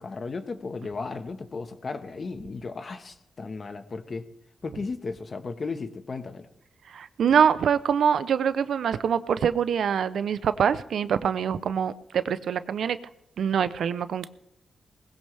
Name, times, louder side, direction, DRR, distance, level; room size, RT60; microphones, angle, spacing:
voice 1, 0.0-4.3 4.6-6.5, left 4 dB, 45° left, 9 dB, 1.4 m, -35 dB
voice 2, 6.9-13.0 13.4-14.3, right 7 dB, 75° right, 14 dB, 0.7 m, -24 dB
20.0 x 16.0 x 3.4 m, 0.84 s
cardioid pair, 65°, 0 cm